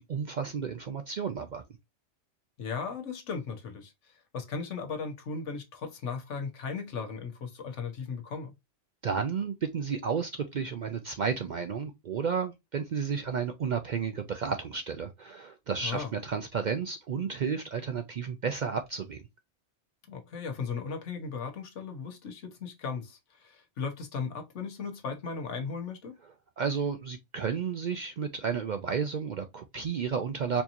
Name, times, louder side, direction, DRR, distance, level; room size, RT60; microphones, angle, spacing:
voice 1, 0.0-1.6 9.0-19.2 26.6-30.6, right 6 dB, 60° right, 0.5 m, -32 dB
voice 2, 2.6-8.5 15.8-16.1 20.1-26.2, left 5 dB, 80° left, 1.3 m, -37 dB
4.4 x 2.9 x 2.5 m
omnidirectional pair, 1.2 m